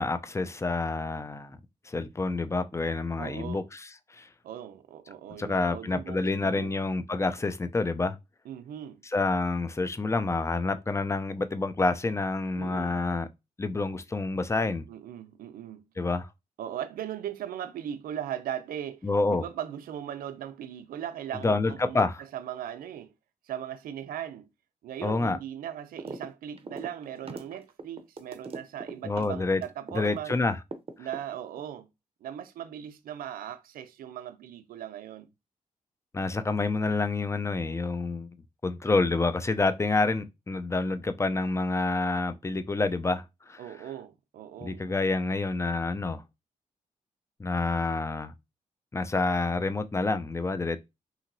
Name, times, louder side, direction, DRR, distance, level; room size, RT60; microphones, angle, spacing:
voice 1, 0.0-1.6 1.9-4.3 5.4-8.2 9.1-13.3 13.6-14.8 16.0-16.3 19.0-19.4 21.4-22.2 25.0-25.4 29.0-29.6 29.9-30.6 36.1-38.3 38.6-43.2 43.5-43.6 44.6-46.2 47.4-48.3 48.9-50.8, left 3 dB, 20° left, 0.5 m, -28 dB
voice 2, 3.2-3.7 4.4-6.7 8.4-9.0 12.5-13.0 14.9-15.9 16.6-23.1 23.4-24.5 24.8-30.3 31.0-31.9 32.2-35.3 43.6-44.9, right 10 dB, 80° right, 0.5 m, -39 dB
sound 1, 26.0-26.3 26.5-30.4 30.7-31.6, right 3 dB, 40° right, 0.6 m, -40 dB
2.8 x 2.7 x 2.6 m
supercardioid pair, 45°, 15 cm